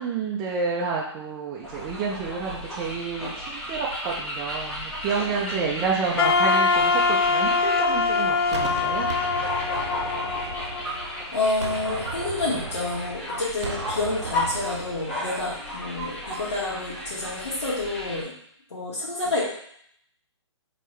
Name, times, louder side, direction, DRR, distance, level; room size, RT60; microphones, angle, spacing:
voice 1, 0.0-9.1, right 5 dB, 20° right, -3 dB, 0.4 m, -29 dB
sound 1, 1.6-18.2, left 1 dB, 5° left, 1.4 m, -34 dB
voice 2, 5.3-5.8 11.3-18.3 18.7-19.4, left 2 dB, 70° left, -7 dB, 1.7 m, -29 dB
Wind instrument woodwind instrument, 6.2-11.2, left 4 dB, 55° left, 0.4 m, -23 dB
Gunshot gunfire, 8.5-11.2 11.6-15.2, right 4 dB, 70° right, 0.7 m, -36 dB
4.5 x 3.1 x 3.2 m, 0.68 s
figure-of-eight pair, 135°, 15 cm